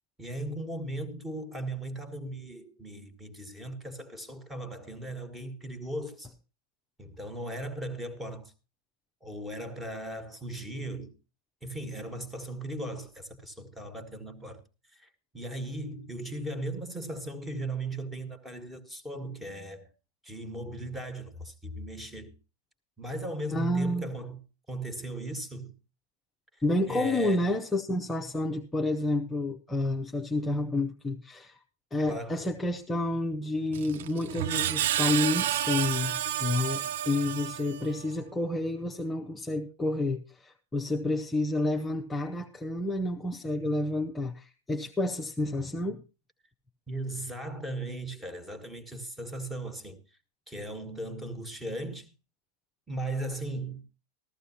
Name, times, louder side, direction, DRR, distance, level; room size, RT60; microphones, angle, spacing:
voice 1, 0.2-6.3 7.0-8.5 9.2-11.1 11.6-14.6 14.9-15.1 15.3-19.9 20.2-22.3 23.0-24.4 24.7-25.7 26.5-27.5 32.1-32.5 46.9-50.0 50.5-52.1 52.9-53.8, right 1 dB, 5° right, 1.7 m, -37 dB
voice 2, 23.5-24.1 26.6-31.5 31.9-46.0, left 1 dB, 10° left, 0.8 m, -30 dB
Screech, 33.7-38.0, right 11 dB, 55° right, 0.6 m, -30 dB
15.0 x 14.0 x 2.8 m
figure-of-eight pair, 90°, 0 cm